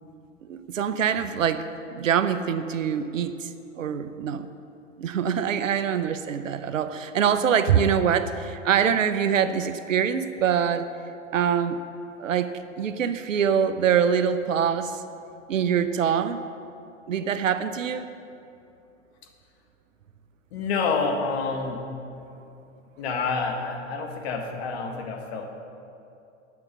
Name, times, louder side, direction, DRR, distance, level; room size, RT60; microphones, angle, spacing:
voice 1, 0.5-4.5 5.0-10.9 11.3-11.8 12.2-15.0 15.5-16.4 17.1-18.1, right 8 dB, 85° right, 11 dB, 0.7 m, -24 dB
voice 2, 20.5-21.9 23.0-25.5, left 4 dB, 55° left, 3 dB, 1.5 m, -28 dB
9.6 x 7.0 x 6.6 m, 2.7 s
hypercardioid pair, 110°, 38 cm